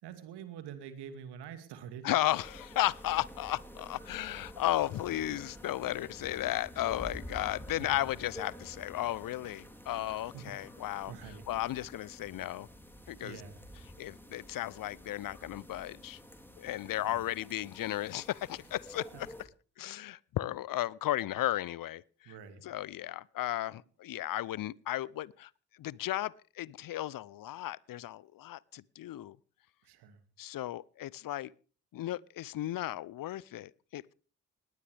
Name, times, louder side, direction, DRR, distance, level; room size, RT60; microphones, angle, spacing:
voice 1, 0.0-2.1 7.8-8.0 10.3-11.4 13.0-13.6 17.0-17.3 19.1-19.2 22.2-22.6 29.8-30.2, right 8 dB, 70° right, 2.5 m, -47 dB
voice 2, 2.0-11.1 11.5-12.7 13.1-13.4 14.0-16.2 16.6-19.3 19.8-22.3 22.6-25.5 25.8-29.4 30.4-31.5 31.9-34.1, left 14 dB, 50° left, 0.7 m, -35 dB
sound 1, 2.3-19.4, equal, 5° left, 3.6 m, -49 dB
19.5 x 18.0 x 3.5 m
hypercardioid pair, 40°, 42 cm